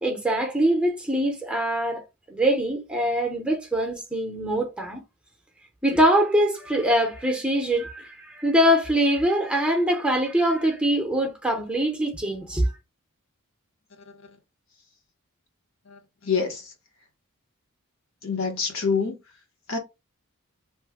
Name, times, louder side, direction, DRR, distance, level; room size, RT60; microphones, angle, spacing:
voice 1, 0.0-2.0 2.3-5.0 5.8-12.7, equal, 5° right, 0.7 m, -23 dB
voice 2, 15.9-16.7 18.2-19.2 19.7-19.8, left 5 dB, 65° left, 1.0 m, -26 dB
3.1 x 2.2 x 3.4 m
head